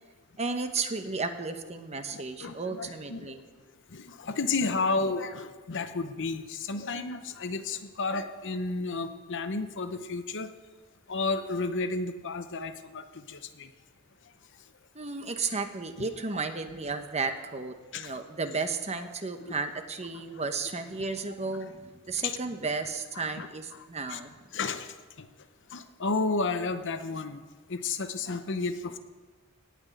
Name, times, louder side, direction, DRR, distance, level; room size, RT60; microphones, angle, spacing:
voice 1, 0.4-3.4 14.9-24.4, right 4 dB, 30° right, 7 dB, 1.0 m, -33 dB
voice 2, 2.1-3.2 3.9-10.5 11.1-13.4 16.0-16.1 17.9-18.1 22.2-22.4 23.2-23.5 24.1-24.2 24.5-24.9 25.7-27.4 27.7-29.0, left 3 dB, 60° left, 9 dB, 0.9 m, -32 dB
17.5 x 6.2 x 9.2 m, 1.4 s
head